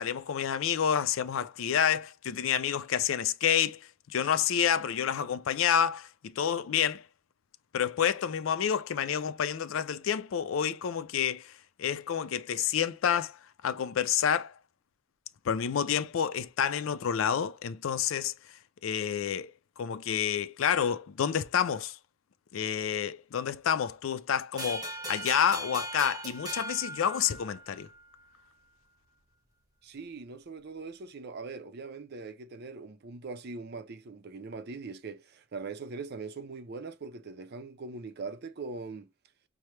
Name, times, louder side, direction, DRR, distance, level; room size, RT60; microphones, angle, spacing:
voice 1, 0.0-3.8 4.1-7.0 7.7-11.5 11.8-13.3 13.6-14.5 15.5-18.3 18.8-19.5 19.8-22.0 22.5-27.9, left 8 dB, 75° left, 0.4 m, -29 dB
sound 1, 24.6-27.8, right 1 dB, 20° right, 1.2 m, -38 dB
voice 2, 29.8-39.1, right 4 dB, 55° right, 0.5 m, -41 dB
5.6 x 2.0 x 3.2 m
head